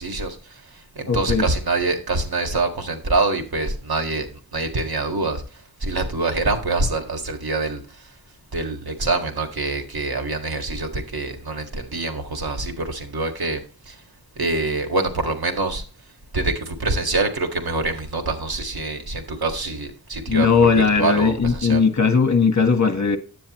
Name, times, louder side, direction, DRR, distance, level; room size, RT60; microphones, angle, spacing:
voice 1, 0.0-4.3 4.5-5.4 5.8-7.8 8.5-13.6 13.9-14.0 14.4-15.8 16.3-21.8, right 3 dB, 80° right, 1.9 m, -25 dB
voice 2, 1.1-1.4 20.3-23.2, left 5 dB, 50° left, 1.4 m, -18 dB
9.6 x 8.6 x 3.0 m
wide cardioid pair, 75°, 37 cm